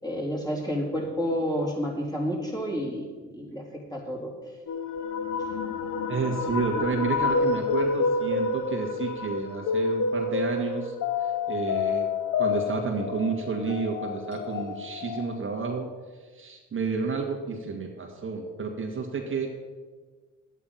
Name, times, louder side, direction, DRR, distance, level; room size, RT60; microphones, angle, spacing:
voice 1, 0.0-4.3 5.4-5.5, equal, 15° left, -3 dB, 3.7 m, -30 dB
sound 1, 4.7-15.6, left 4 dB, 80° left, 1.1 m, -29 dB
voice 2, 6.1-11.0 11.5-12.1 12.4-15.9 16.3-19.5, right 4 dB, 40° right, 1 dB, 1.8 m, -30 dB
11.5 x 9.1 x 5.7 m, 1.5 s
cardioid pair, 90°, 30 cm